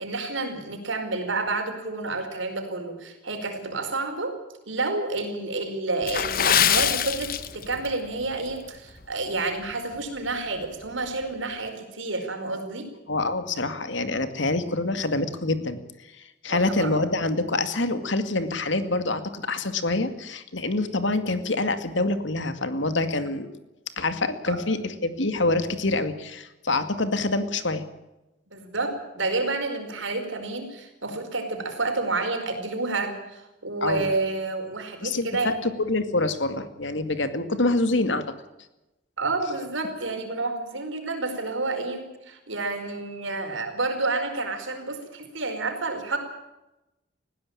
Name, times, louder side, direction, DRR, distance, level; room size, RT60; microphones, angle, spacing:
voice 1, 0.0-4.4 4.7-12.9 16.4-16.9 24.5-24.6 28.5-35.6 39.2-46.2, right 3 dB, 85° right, 6 dB, 4.9 m, -29 dB
Water / Splash splatter, 6.0-7.9 8.2-8.5 9.0-9.2 9.7-9.8, left 9 dB, 45° left, 1.1 m, -23 dB
voice 2, 13.1-15.8 16.4-23.5 24.0-27.8 33.8-34.1 35.0-38.2, left 2 dB, 75° left, 10 dB, 2.2 m, -26 dB
20.0 x 16.0 x 8.7 m, 0.97 s
head